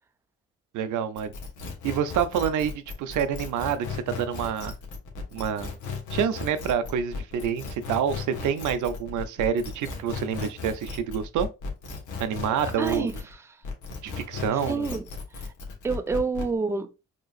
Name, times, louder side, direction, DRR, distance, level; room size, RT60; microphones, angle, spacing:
voice 1, 0.7-1.3 1.8-4.7 5.3-5.7 6.1-11.5 12.2-13.1 14.0-14.9, right 8 dB, 80° right, 0.7 m, -27 dB
sound 1, 1.2-13.3 13.6-16.5, left 4 dB, 80° left, 1.4 m, -36 dB
voice 2, 12.8-13.4 14.5-15.1 15.4-15.5 15.8-16.9, right 4 dB, 10° right, 0.5 m, -28 dB
5.2 x 3.0 x 2.4 m
cardioid pair, 90°, 30 cm